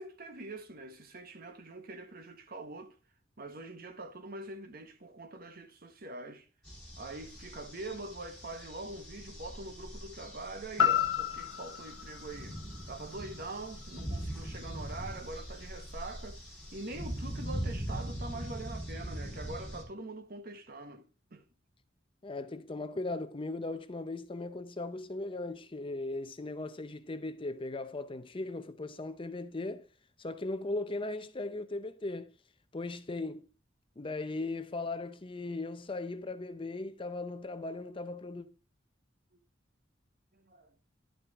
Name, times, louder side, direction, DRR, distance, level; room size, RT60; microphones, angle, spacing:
voice 1, 0.0-2.9 3.4-6.5 7.0-12.6 12.9-16.4 16.7-21.0 21.3-21.4 39.3-39.4 40.3-40.7, right 2 dB, 50° right, 1.2 m, -44 dB
sound 1, 6.6-19.8, equal, ahead, 2.9 m, -41 dB
sound 2, 10.8-14.9 15.3-15.4, left 9 dB, 80° left, 0.8 m, -33 dB
voice 2, 22.2-29.9 30.2-32.3 32.7-33.5 34.0-38.5, left 2 dB, 30° left, 0.6 m, -38 dB
11.0 x 5.7 x 3.5 m
head